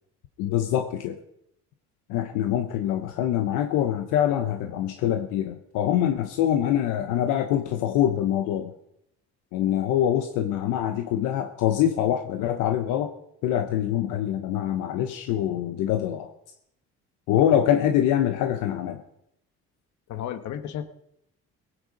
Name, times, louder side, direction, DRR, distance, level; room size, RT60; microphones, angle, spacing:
voice 1, 0.4-1.2 2.1-8.7 9.5-13.1 13.4-16.3 17.3-19.0, left 11 dB, 85° left, 7 dB, 1.0 m, -24 dB
voice 2, 20.1-20.9, left 10 dB, 65° left, 10 dB, 1.4 m, -33 dB
18.5 x 9.4 x 5.3 m, 0.76 s
supercardioid pair, 80°, 31 cm